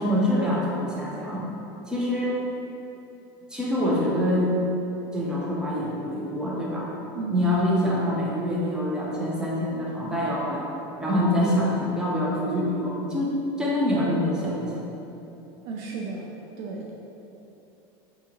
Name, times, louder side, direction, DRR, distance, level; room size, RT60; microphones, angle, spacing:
voice 1, 0.0-1.5 1.9-2.4 3.5-4.6 5.1-6.9 7.3-10.7 11.0-14.9, left 1 dB, 5° right, -5 dB, 0.5 m, -25 dB
voice 2, 7.1-7.4 15.6-16.9, right 4 dB, 70° right, -2 dB, 0.4 m, -34 dB
2.8 x 2.8 x 3.7 m, 2.9 s
supercardioid pair, 140°, 13 cm